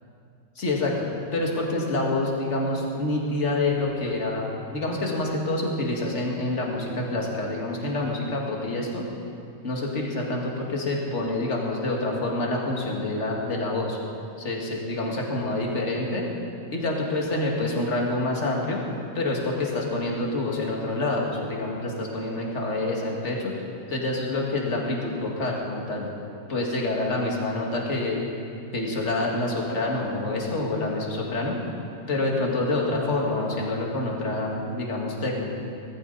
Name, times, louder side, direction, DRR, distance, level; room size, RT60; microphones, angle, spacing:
voice 1, 0.6-1.1 1.3-9.1 9.6-14.0 14.4-16.3 16.7-18.8 19.1-26.1 26.5-28.2 28.7-31.6 32.1-35.5, left 2 dB, 40° left, -1 dB, 2.2 m, -27 dB
18.0 x 15.0 x 4.1 m, 2.5 s
omnidirectional pair, 2.0 m